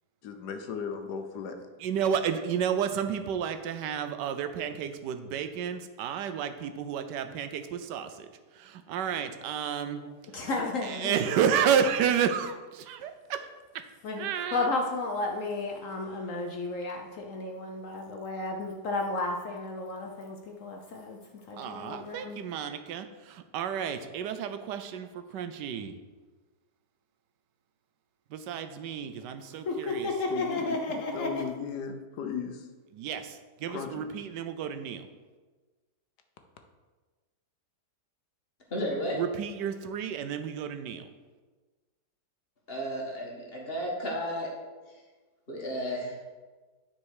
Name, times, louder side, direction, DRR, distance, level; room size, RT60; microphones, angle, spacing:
voice 1, 0.2-1.5 30.3-32.7 33.7-34.1, left 6 dB, 75° left, 6 dB, 1.3 m, -36 dB
voice 2, 1.8-8.3 8.6-10.0 10.4-13.4 14.2-14.7 21.6-25.9 28.3-30.1 33.0-35.0 39.2-41.0, right 8 dB, 90° right, 9 dB, 1.3 m, -31 dB
voice 3, 10.3-11.2 14.0-21.2 21.5-22.4 29.7-31.4, left 2 dB, 60° left, 2 dB, 0.9 m, -33 dB
voice 4, 38.7-39.2 42.7-44.5 45.5-46.2, equal, 35° left, -1 dB, 1.6 m, -33 dB
9.7 x 4.4 x 4.8 m, 1.3 s
omnidirectional pair, 1.8 m